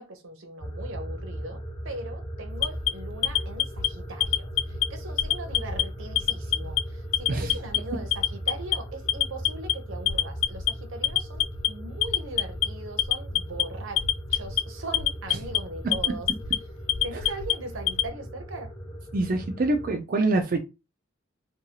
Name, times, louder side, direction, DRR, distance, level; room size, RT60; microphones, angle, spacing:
voice 1, 0.0-14.0 14.3-16.3 17.0-18.7, right 2 dB, 85° right, 0.7 m, -40 dB
sound 1, 0.6-19.9, right 1 dB, 25° left, 1.2 m, -38 dB
Alarm, 2.6-3.9 4.2-4.8 5.2-5.8 6.2-6.8 7.1-7.8 8.1-8.7 9.1-9.7 10.1-10.7 11.0-11.7 12.0-12.7 13.0-13.6 14.0-14.6 14.9-15.6 15.9-16.6 16.9-18.1, left 12 dB, 70° left, 0.3 m, -24 dB
voice 2, 19.1-20.6, right 2 dB, 45° right, 0.4 m, -25 dB
2.7 x 2.3 x 2.8 m
head